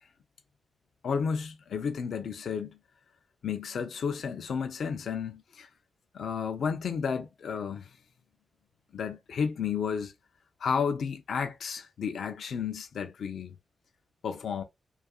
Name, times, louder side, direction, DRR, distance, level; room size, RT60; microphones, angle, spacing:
voice 1, 1.0-2.8 3.4-5.7 6.1-8.0 8.9-10.1 10.6-13.6 14.2-14.6, left 6 dB, 80° left, 0.4 m, -32 dB
2.7 x 2.4 x 2.3 m
cardioid pair, 50°, 0 cm